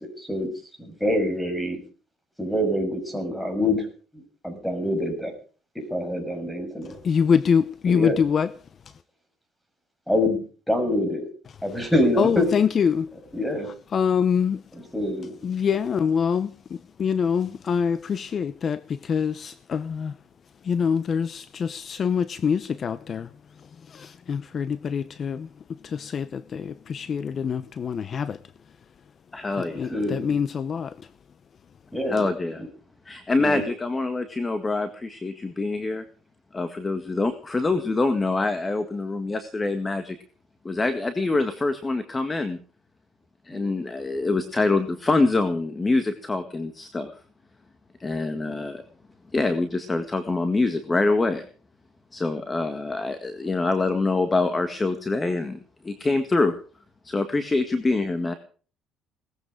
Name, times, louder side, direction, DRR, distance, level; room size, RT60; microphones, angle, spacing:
voice 1, 0.2-0.5 0.9-1.8 2.4-3.9 4.4-5.3 5.9-6.9 7.9-8.2 10.1-10.4 10.7-11.3 11.6-12.5 13.3-13.7 14.9-15.4 29.9-30.4 31.9-32.2 33.4-33.6 43.5-43.6, left 1 dB, ahead, 6.5 m, -25 dB
voice 2, 7.0-8.5 12.2-13.1 13.9-14.6 15.4-16.5 17.0-20.1 20.6-23.3 23.9-25.5 25.8-28.4 29.6-30.9, left 6 dB, 40° left, 0.7 m, -25 dB
voice 3, 29.3-30.0 32.1-32.6 33.0-36.0 36.5-40.1 40.6-42.6 43.4-47.1 48.0-48.8 49.3-51.4 52.1-55.6 55.8-56.6 57.0-58.3, left 3 dB, 20° left, 1.8 m, -25 dB
19.0 x 14.5 x 5.0 m
cardioid pair, 120°, 0 cm